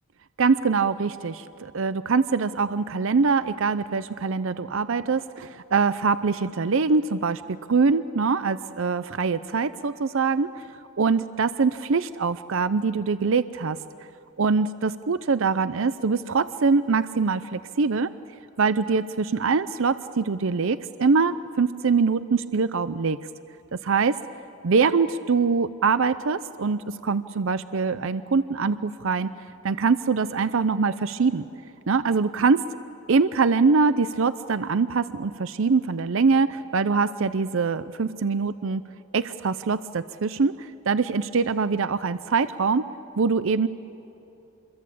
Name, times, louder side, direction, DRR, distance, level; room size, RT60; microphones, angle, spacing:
voice 1, 0.4-10.6 11.0-13.8 14.4-18.1 18.6-23.2 23.8-24.2 24.6-29.3 29.6-31.4 31.9-32.6 33.1-38.8 39.1-42.8 43.2-43.7, right 4 dB, 65° right, 14 dB, 0.6 m, -23 dB
27.5 x 22.5 x 8.5 m, 3.0 s
head